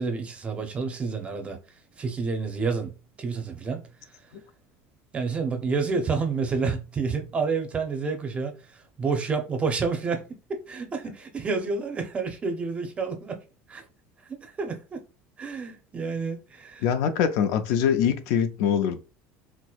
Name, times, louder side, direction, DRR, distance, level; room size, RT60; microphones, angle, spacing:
voice 1, 0.0-1.6 2.0-2.9 3.2-3.9 5.1-10.2 10.5-13.4 13.7-13.8 14.4-15.0 15.4-16.8, right 4 dB, 20° right, 0.6 m, -29 dB
voice 2, 16.8-19.0, left 8 dB, 70° left, 0.4 m, -23 dB
4.4 x 2.0 x 2.3 m
cardioid pair, 155°, 6 cm